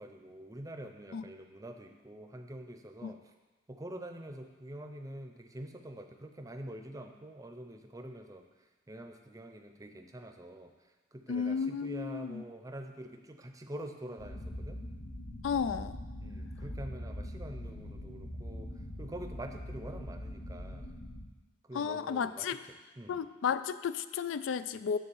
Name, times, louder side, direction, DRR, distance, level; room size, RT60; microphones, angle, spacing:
voice 1, 0.0-3.3 3.7-8.4 8.9-10.7 11.1-14.8 16.2-18.7 19.0-21.0 21.7-22.5 23.0-23.2, right 1 dB, 20° right, 5 dB, 0.6 m, -45 dB
voice 2, 11.3-12.4 15.4-16.0 21.7-22.6 23.1-25.0, left 6 dB, 85° left, 13 dB, 0.4 m, -33 dB
sound 1, 14.2-21.2, equal, 65° left, 1.1 m, -42 dB
9.8 x 3.7 x 7.0 m, 1.2 s
head